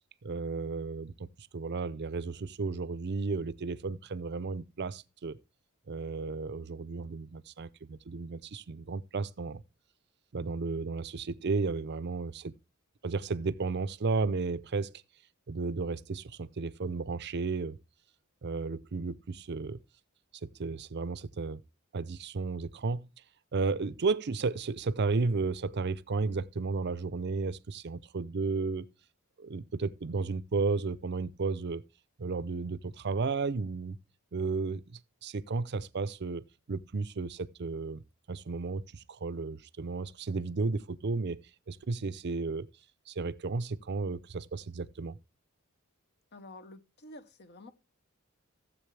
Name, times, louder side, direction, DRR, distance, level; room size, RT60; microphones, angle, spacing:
voice 1, 0.2-5.4 5.9-9.6 10.3-12.5 13.0-14.9 15.5-17.8 18.4-19.8 20.4-21.6 21.9-23.1 23.5-28.9 29.4-31.8 32.2-34.0 34.3-38.0 38.3-41.4 41.7-42.7 43.1-45.2, right 4 dB, 55° right, 0.6 m, -33 dB
voice 2, 46.3-47.7, left 2 dB, 50° left, 0.9 m, -49 dB
16.0 x 7.6 x 3.3 m
head